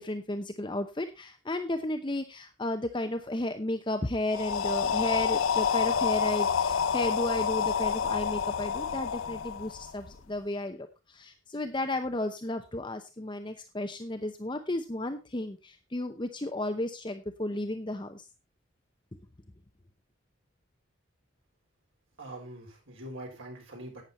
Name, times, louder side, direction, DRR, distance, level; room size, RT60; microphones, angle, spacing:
voice 1, 0.0-18.2, left 1 dB, 25° left, 7 dB, 0.8 m, -33 dB
sound 1, 4.3-10.2, left 7 dB, 85° left, 0.7 m, -28 dB
voice 2, 22.2-24.0, right 1 dB, 80° right, 0 dB, 6.3 m, -43 dB
12.0 x 9.1 x 4.1 m, 0.28 s
head